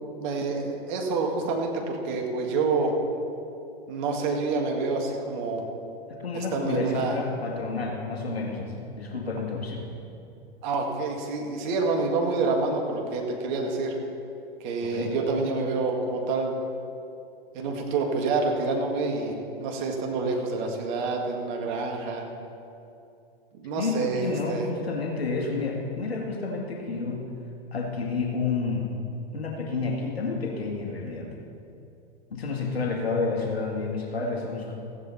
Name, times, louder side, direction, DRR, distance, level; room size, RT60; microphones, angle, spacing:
voice 1, 0.2-2.9 3.9-5.7 6.3-7.2 10.6-14.0 14.6-16.6 17.5-22.3 23.5-24.6, right 3 dB, 50° right, 1 dB, 2.0 m, -27 dB
voice 2, 6.2-9.9 14.8-15.2 23.8-27.2 27.7-28.9 29.3-31.3 32.3-34.7, left 4 dB, 90° left, -1 dB, 1.9 m, -30 dB
15.0 x 9.2 x 4.3 m, 2.7 s
hypercardioid pair, 110°, 30 cm